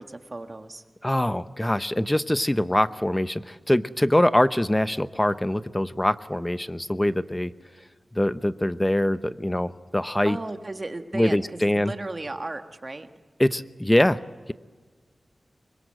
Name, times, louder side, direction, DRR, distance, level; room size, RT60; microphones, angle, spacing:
voice 1, 0.0-0.8 10.2-13.1, right 2 dB, 35° right, 6 dB, 1.7 m, -35 dB
voice 2, 1.0-7.5 8.1-10.4 11.1-11.9 13.4-14.2, left 1 dB, 15° left, 13 dB, 0.8 m, -23 dB
25.0 x 22.0 x 7.7 m, 1.4 s
wide cardioid pair, 75°, 0 cm